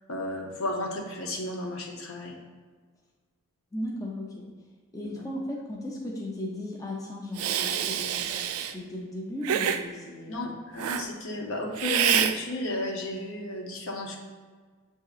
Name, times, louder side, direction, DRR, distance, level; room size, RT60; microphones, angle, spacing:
voice 1, 0.1-2.4 5.0-5.2 10.3-14.2, left 1 dB, 70° left, 1 dB, 0.7 m, -33 dB
voice 2, 3.7-4.5 4.9-8.4 8.7-10.5 10.8-10.9, left 1 dB, 15° left, -2 dB, 0.5 m, -36 dB
Hiss, 7.4-8.7 9.4-9.8 10.8-11.1 11.8-12.3, right 9 dB, 85° right, 0.3 m, -26 dB
7.7 x 2.7 x 2.4 m, 1.5 s
head